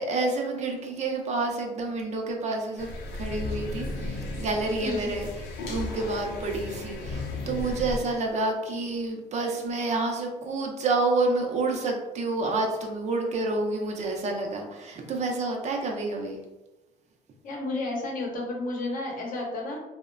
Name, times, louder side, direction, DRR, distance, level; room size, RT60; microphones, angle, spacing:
voice 1, 0.0-5.3 5.6-16.4, right 3 dB, 45° right, 2 dB, 0.5 m, -29 dB
sound 1, 2.8-8.0, left 2 dB, 90° left, 0.5 m, -35 dB
voice 2, 17.4-19.8, left 2 dB, 55° left, 0 dB, 0.7 m, -31 dB
2.7 x 2.0 x 2.4 m, 1.0 s
cardioid pair, 110°, 17 cm